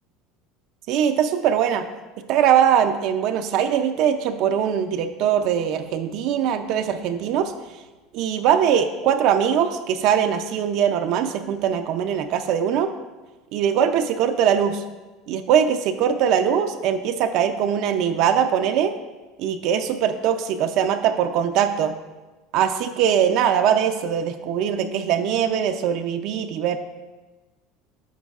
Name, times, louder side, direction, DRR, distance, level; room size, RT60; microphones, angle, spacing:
voice 1, 0.9-1.9 2.3-7.5 8.1-12.9 13.5-14.8 15.3-18.9 19.4-21.9 22.5-26.8, right 8 dB, 50° right, 7 dB, 0.4 m, -21 dB
9.3 x 6.8 x 2.4 m, 1.2 s
cardioid pair, 160°, 0 cm